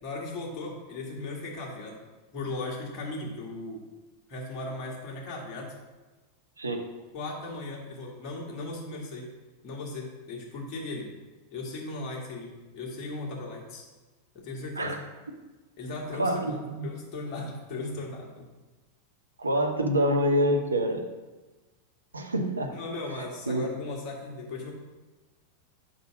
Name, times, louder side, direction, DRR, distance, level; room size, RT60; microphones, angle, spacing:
voice 1, 0.0-2.0 2.3-3.8 4.3-5.7 7.1-9.3 9.6-11.1 11.5-13.8 14.3-14.9 15.8-18.4 22.7-24.7, left 2 dB, 35° left, -2 dB, 1.6 m, -37 dB
voice 2, 6.6-6.9 14.8-15.0 16.1-16.9 19.4-21.0 22.1-22.7 23.5-23.7, equal, 80° right, 4 dB, 0.6 m, -26 dB
5.5 x 3.7 x 5.9 m, 1.2 s
figure-of-eight pair, 90°, 0 cm